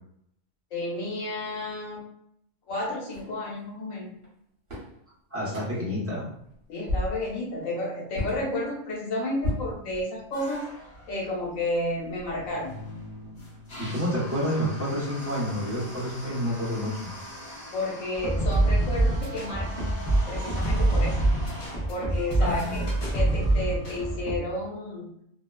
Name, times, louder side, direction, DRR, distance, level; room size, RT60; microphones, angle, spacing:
voice 1, 0.7-2.0 2.7-4.1 6.7-10.6 11.1-12.7 17.7-19.9 20.3-21.2 21.9-25.1, left 1 dB, 90° left, -3 dB, 1.2 m, -31 dB
sound 1, 3.1-3.4 4.2-4.3 4.7-5.0 5.5-5.9 6.4-6.5 6.9-7.3 8.1-8.4 9.4-10.4, left 2 dB, 50° right, 1.1 m, -32 dB
voice 2, 5.3-6.3 13.8-16.9 22.4-22.9, equal, 15° right, -8 dB, 0.7 m, -29 dB
sound 2, 10.3-24.3, left 1 dB, 55° left, 1.4 m, -42 dB
sound 3, 18.2-24.4, right 2 dB, 35° left, 0.5 m, -25 dB
2.7 x 2.1 x 2.2 m, 0.72 s
omnidirectional pair, 1.4 m